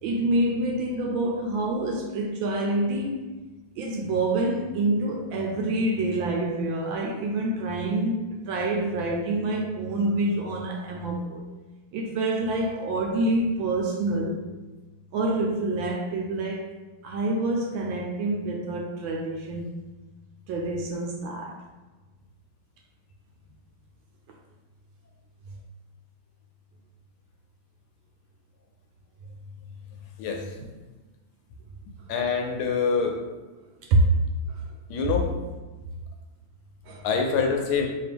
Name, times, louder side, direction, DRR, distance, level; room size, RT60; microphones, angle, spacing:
voice 1, 0.0-3.2 3.8-11.4 11.9-14.4 15.1-16.7 17.0-19.7 20.5-21.6 33.9-34.1 34.5-34.6 36.8-37.1, right 2 dB, 75° right, 0 dB, 1.2 m, -27 dB
voice 2, 30.2-30.6 32.1-33.2 34.9-35.3 37.0-37.9, left 5 dB, 75° left, 2 dB, 1.4 m, -25 dB
4.2 x 2.9 x 3.4 m, 1.2 s
omnidirectional pair, 2.4 m